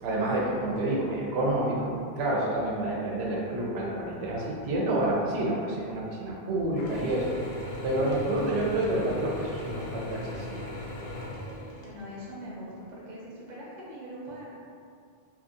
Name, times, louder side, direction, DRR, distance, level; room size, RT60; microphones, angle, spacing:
voice 1, 0.0-7.4 7.8-10.6, right 1 dB, 85° right, -4 dB, 0.9 m, -28 dB
Mechanisms / Drill, 6.8-12.3, left 1 dB, 75° left, 0.8 m, -38 dB
voice 2, 11.8-14.5, equal, 50° right, -6 dB, 0.8 m, -42 dB
2.6 x 2.5 x 2.5 m, 2.3 s
omnidirectional pair, 1.1 m